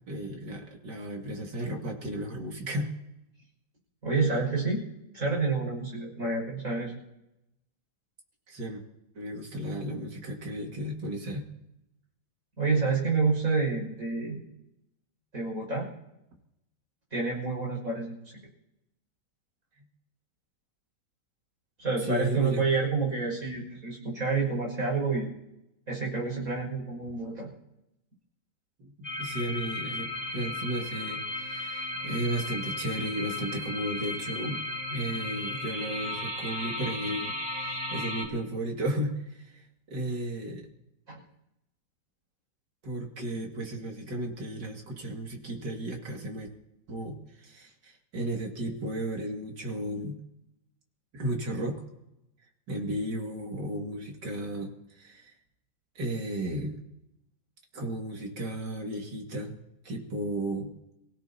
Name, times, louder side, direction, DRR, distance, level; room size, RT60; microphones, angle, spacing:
voice 1, 0.1-2.9 8.5-8.8 9.1-11.5 22.0-22.6 28.8-34.6 34.9-40.7 42.8-46.5 46.9-50.2 51.1-51.8 52.7-55.3 56.0-56.8 57.7-59.6 59.8-60.7, right 1 dB, 70° right, 1 dB, 2.9 m, -34 dB
voice 2, 4.0-4.8 5.1-6.9 12.6-14.4 15.3-15.9 17.1-18.4 21.8-25.3 25.9-27.5 41.1-41.2, right 4 dB, 45° right, -2 dB, 6.4 m, -28 dB
sound 1, 29.0-38.2, left 1 dB, 5° right, 2.4 m, -35 dB
27.5 x 16.5 x 2.8 m, 0.87 s
omnidirectional pair, 1.9 m